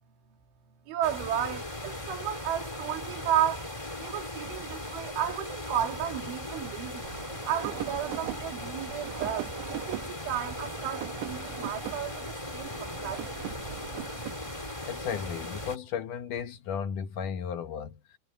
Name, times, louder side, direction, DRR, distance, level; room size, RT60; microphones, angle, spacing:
voice 1, 0.9-3.7 4.0-7.1 7.5-13.4, right 10 dB, 90° right, 5.1 m, -33 dB
sound 1, 1.0-15.8, left 1 dB, 10° left, 1.6 m, -38 dB
sound 2, 7.0-14.7, right 14 dB, 70° right, 3.3 m, -41 dB
voice 2, 14.9-18.2, left 7 dB, 65° left, 2.1 m, -34 dB
omnidirectional pair, 5.3 m